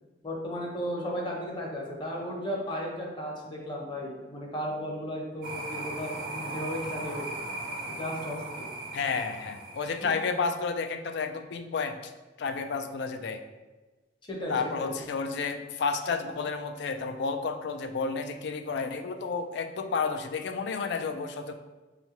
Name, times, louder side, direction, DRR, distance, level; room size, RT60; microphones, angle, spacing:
voice 1, 0.2-7.3 7.9-8.4 10.0-10.1 14.3-14.9, equal, 25° left, -2 dB, 0.7 m, -35 dB
sound 1, 5.4-10.5, right 2 dB, 50° right, 0.6 m, -38 dB
voice 2, 8.9-12.1 12.4-13.4 14.5-21.5, left 5 dB, 65° left, 7 dB, 0.3 m, -31 dB
5.3 x 2.3 x 2.9 m, 1.2 s
head